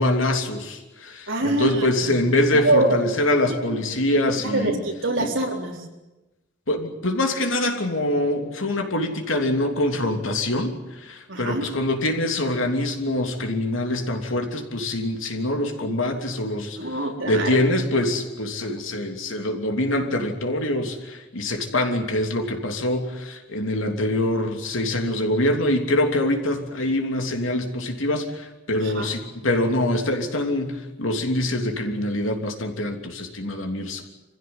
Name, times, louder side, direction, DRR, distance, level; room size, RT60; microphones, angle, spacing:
voice 1, 0.0-4.8 5.2-5.3 6.7-16.8 17.2-34.0, left 1 dB, 75° left, 4 dB, 3.1 m, -24 dB
voice 2, 1.3-2.1 2.5-3.0 3.7-3.8 4.5-5.8 11.3-11.6 16.8-17.7 28.7-29.1, right 2 dB, 70° right, 2 dB, 4.0 m, -25 dB
25.0 x 16.0 x 9.7 m, 1.1 s
head